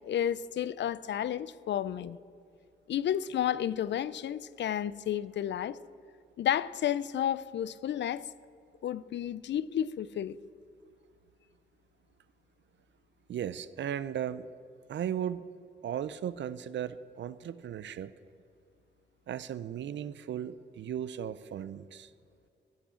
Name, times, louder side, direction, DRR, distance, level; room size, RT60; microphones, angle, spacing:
voice 1, 0.1-2.2 2.9-5.8 6.4-8.2 8.8-10.4, left 10 dB, 65° left, 0.4 m, -31 dB
voice 2, 13.3-14.5 14.9-15.5 15.8-18.1 19.3-22.1, right 9 dB, 70° right, 0.5 m, -36 dB
16.0 x 6.2 x 7.0 m
wide cardioid pair, 120°, 20 cm